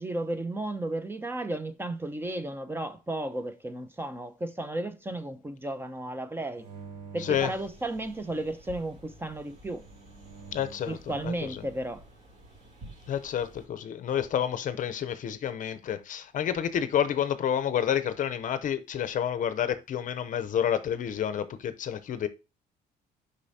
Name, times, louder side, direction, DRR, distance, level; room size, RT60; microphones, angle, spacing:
voice 1, 0.0-6.7 7.1-9.8 10.9-12.0, right 1 dB, 15° right, 0.6 m, -34 dB
sound 1, 6.6-8.5 9.5-11.0, right 5 dB, 70° right, 2.7 m, -48 dB
voice 2, 7.2-7.5 10.5-11.6 13.1-22.3, left 9 dB, 50° left, 0.6 m, -29 dB
sound 2, 7.3-13.7, right 1 dB, 45° right, 2.7 m, -51 dB
6.7 x 5.5 x 2.7 m
cardioid pair, 110°, 17 cm